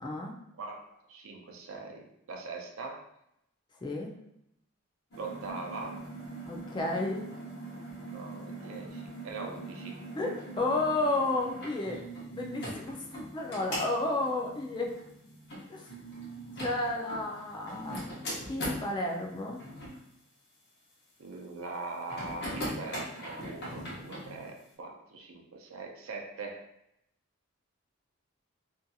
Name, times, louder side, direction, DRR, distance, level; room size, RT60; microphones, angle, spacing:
voice 1, 0.0-0.4 3.8-4.1 6.5-7.3 10.2-12.0 12.3-14.9 15.7-15.9 16.6-18.0 18.5-19.6, left 2 dB, 20° left, 1 dB, 0.3 m, -32 dB
voice 2, 1.1-2.0 2.3-3.0 5.2-6.0 8.1-10.0 21.2-26.6, right 3 dB, 75° right, 2 dB, 0.5 m, -41 dB
sound 1, 5.1-18.9 19.6-20.0 22.1-24.5, right 1 dB, 50° left, 0.8 m, -41 dB
2.6 x 2.6 x 2.3 m, 0.78 s
head